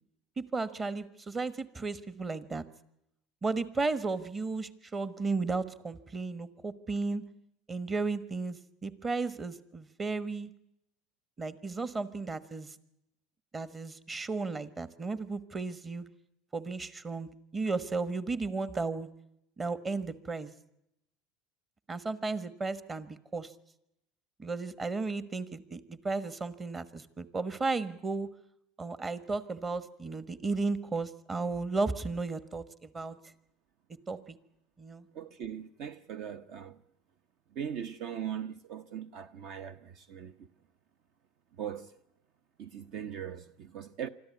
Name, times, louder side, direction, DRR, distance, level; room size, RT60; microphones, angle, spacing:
voice 1, 0.4-2.6 3.4-7.2 7.7-10.5 11.4-12.7 13.5-16.0 16.5-19.1 19.6-20.5 21.9-23.5 24.4-28.3 28.8-33.2 34.1-34.4 34.8-35.1, right 3 dB, 25° right, 1.3 m, -34 dB
voice 2, 35.1-36.8 37.6-40.3 41.6-41.9 42.6-44.1, right 9 dB, 60° right, 0.8 m, -40 dB
25.0 x 13.5 x 9.5 m
hypercardioid pair, 95°, 0 cm